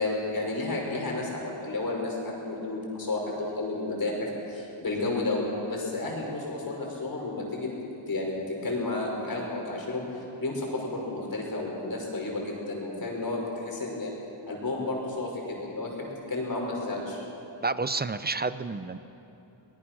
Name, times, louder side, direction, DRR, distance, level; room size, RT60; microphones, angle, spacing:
voice 1, 0.0-4.2 4.5-7.7 8.1-14.1 14.5-17.2, left 2 dB, 45° left, -1 dB, 5.6 m, -32 dB
voice 2, 17.6-19.0, right 3 dB, 20° right, 13 dB, 0.5 m, -30 dB
24.0 x 19.5 x 6.2 m, 3.0 s
wide cardioid pair, 110°, 50 cm